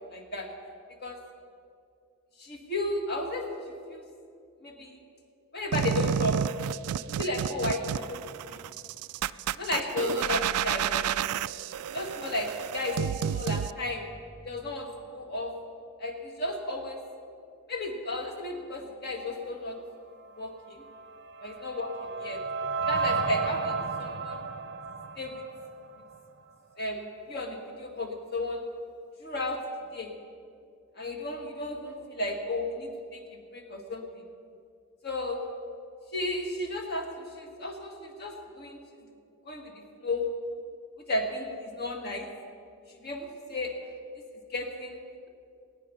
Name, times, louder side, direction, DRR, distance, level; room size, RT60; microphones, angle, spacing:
voice 1, 0.1-0.5 1.0-1.2 2.4-3.4 3.9-4.0 4.6-5.0 5.5-6.4 7.2-8.2 8.5-8.6 9.6-11.0 11.9-14.1 14.4-14.9 15.1-15.5 16.0-17.0 17.7-19.8 20.4-20.8 21.4-22.4 22.8-24.4 25.2-25.4 26.8-28.6 29.2-29.6 29.9-30.1 31.0-34.3 35.0-35.4 36.1-38.8 39.4-39.7 40.0-40.3 41.1-42.3 43.0-43.7 44.5-45.0, left 2 dB, 50° left, 2 dB, 1.7 m, -33 dB
sound 1, 5.7-13.7, right 9 dB, 90° right, 0.3 m, -30 dB
sound 2, 21.0-26.2, right 4 dB, 50° right, 0.7 m, -33 dB
20.5 x 9.3 x 5.6 m, 2.4 s
head